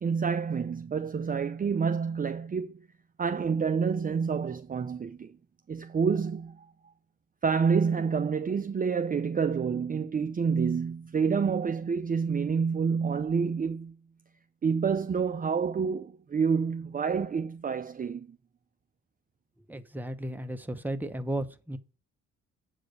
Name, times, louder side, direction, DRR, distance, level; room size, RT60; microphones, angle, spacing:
voice 1, 0.0-2.8 3.2-5.3 5.7-6.6 7.4-14.0 14.6-18.3, right 6 dB, 30° right, 0.6 m, -28 dB
voice 2, 19.7-21.8, right 1 dB, 5° right, 1.0 m, -34 dB
8.1 x 4.9 x 6.4 m
cardioid pair, 90°, 30 cm